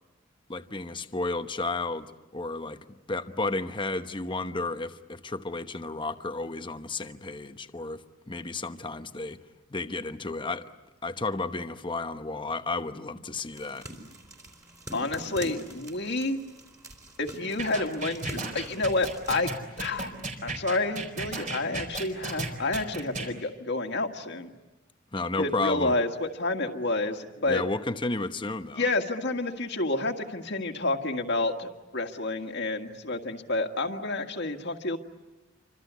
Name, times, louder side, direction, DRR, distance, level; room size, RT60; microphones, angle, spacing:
voice 1, 0.5-2.8 3.1-9.4 9.7-10.7 11.0-13.9 25.1-25.9 27.4-28.9, left 3 dB, 25° left, 1.0 m, -32 dB
sound 1, 13.5-19.4, right 1 dB, 15° right, 4.1 m, -44 dB
voice 2, 14.9-16.4 17.2-19.5 19.8-20.1 20.4-24.5 25.4-27.6 28.8-35.0, left 2 dB, 55° left, 1.9 m, -29 dB
sound 2, 17.6-23.3, right 3 dB, 40° right, 4.3 m, -34 dB
28.0 x 25.5 x 8.3 m
head